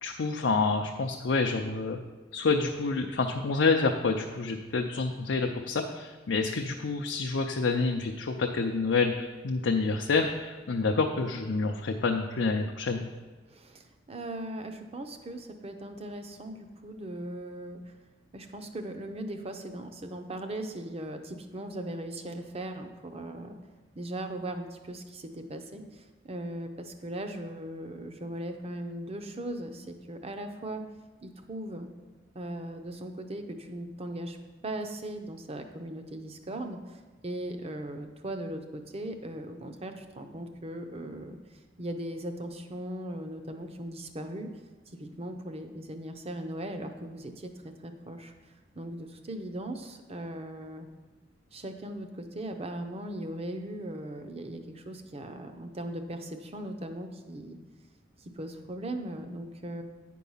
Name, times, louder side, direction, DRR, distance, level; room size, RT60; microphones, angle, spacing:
voice 1, 0.0-2.0 2.3-13.0, left 4 dB, 70° left, 2 dB, 0.5 m, -28 dB
voice 2, 13.5-17.9 18.3-23.6 24.0-30.8 31.2-31.9 32.3-34.4 34.6-41.4 41.8-44.5 44.9-48.3 48.7-50.9 51.5-57.6 58.2-59.8, right 1 dB, 35° right, 7 dB, 0.6 m, -38 dB
9.1 x 4.6 x 5.6 m, 1.3 s
head